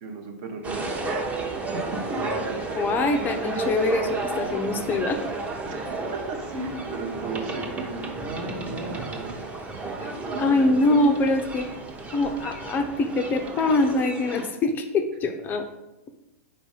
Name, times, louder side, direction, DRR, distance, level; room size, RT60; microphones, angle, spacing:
voice 1, 0.0-1.4 1.7-2.2 5.6-9.3, right 2 dB, 45° right, 4 dB, 0.8 m, -35 dB
sound 1, 0.6-14.5, right 3 dB, 15° right, 0.7 m, -32 dB
voice 2, 2.7-5.2 10.0-11.7 12.1-15.7, left 2 dB, 25° left, 6 dB, 0.4 m, -24 dB
4.2 x 2.6 x 4.8 m, 0.95 s
hypercardioid pair, 110°, 8 cm